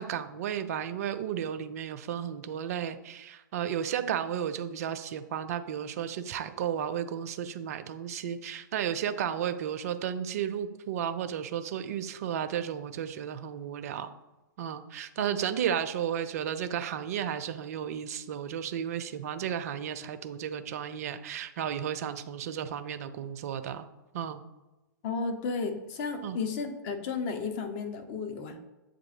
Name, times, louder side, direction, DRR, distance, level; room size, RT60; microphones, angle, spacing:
voice 1, 0.0-14.1 14.6-23.9 24.1-24.4 26.2-26.4, right 9 dB, 50° right, 11 dB, 0.4 m, -33 dB
voice 2, 25.0-28.6, left 4 dB, 40° left, 6 dB, 0.7 m, -33 dB
7.6 x 2.6 x 2.7 m, 1.0 s
figure-of-eight pair, 105°, 11 cm